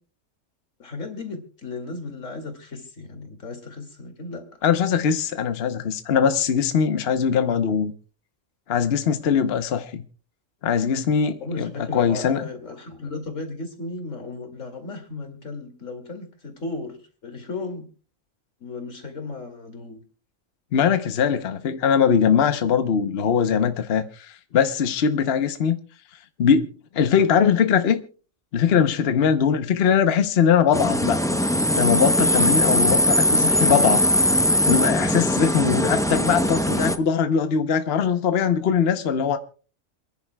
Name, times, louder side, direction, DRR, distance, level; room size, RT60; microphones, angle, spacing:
voice 1, 0.8-4.6 11.4-17.9 18.6-20.0 29.5-29.7 34.2-34.6, left 3 dB, 90° left, 2.7 m, -35 dB
voice 2, 4.6-7.9 8.7-10.0 10.6-12.4 20.7-25.8 26.4-28.0 28.5-31.2 31.7-34.0 34.7-39.4, left 7 dB, 60° left, 1.0 m, -21 dB
sound 1, 30.7-37.0, equal, 5° left, 0.3 m, -20 dB
28.0 x 10.5 x 2.2 m
omnidirectional pair, 1.3 m